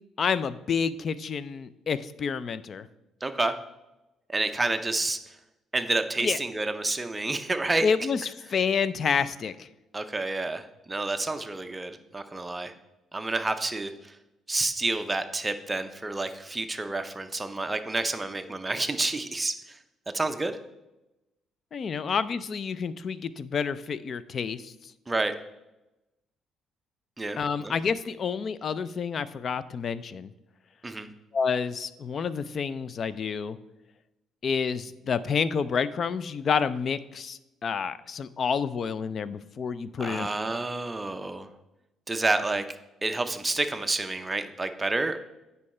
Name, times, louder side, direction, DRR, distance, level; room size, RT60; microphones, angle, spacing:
voice 1, 0.2-2.9 6.2-6.4 7.8-8.2 8.5-9.7 21.7-24.7 27.4-30.3 31.3-33.6 34.4-40.3, left 6 dB, 40° left, 16 dB, 0.4 m, -29 dB
voice 2, 3.2-3.5 4.3-5.2 5.7-7.9 9.9-12.7 13.1-14.1 14.5-19.8 20.1-20.6 25.1-25.4 27.2-27.7 30.8-31.1 40.0-41.5 42.1-42.6 43.0-45.2, right 2 dB, 15° right, 8 dB, 0.6 m, -29 dB
8.5 x 5.5 x 4.2 m, 0.98 s
cardioid pair, 125°, 0 cm